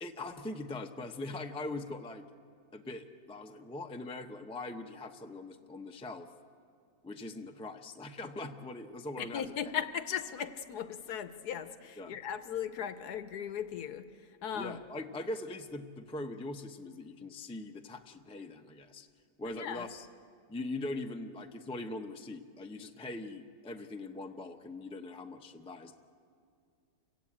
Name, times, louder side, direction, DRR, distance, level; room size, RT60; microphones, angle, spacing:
voice 1, 0.0-2.2 2.7-6.3 7.0-9.7 12.0-12.2 14.5-19.1 19.4-20.1 20.5-26.0, left 2 dB, 5° left, 4 dB, 0.5 m, -41 dB
voice 2, 9.2-14.8 19.4-19.9, left 8 dB, 65° left, 11 dB, 1.3 m, -38 dB
29.0 x 16.0 x 8.7 m, 2.3 s
omnidirectional pair, 1.9 m